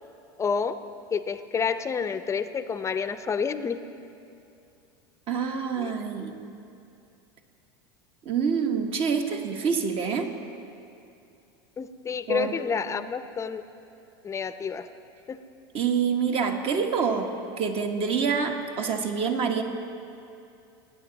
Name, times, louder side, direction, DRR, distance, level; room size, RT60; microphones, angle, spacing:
voice 1, 0.4-0.8 1.1-3.8 5.8-5.9 11.8-13.6 14.2-14.9 15.3-15.4, left 6 dB, 20° left, 11 dB, 0.6 m, -29 dB
voice 2, 5.3-6.3 8.2-10.3 12.3-12.6 15.7-17.3 17.6-19.6, right 6 dB, 45° right, 4 dB, 1.3 m, -26 dB
19.0 x 9.1 x 4.0 m, 2.6 s
hypercardioid pair, 95°, 13 cm